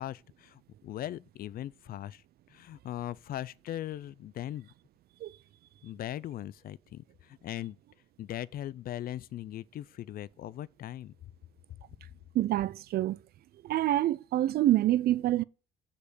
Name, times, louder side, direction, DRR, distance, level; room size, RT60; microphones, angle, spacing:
voice 1, 0.0-2.2 2.5-4.7 5.8-7.8 8.2-11.1 11.7-11.8, left 12 dB, 50° left, 0.4 m, -39 dB
voice 2, 12.3-13.2 13.6-15.4, right 14 dB, 55° right, 0.4 m, -26 dB
6.3 x 5.2 x 6.8 m
cardioid pair, 95°, 19 cm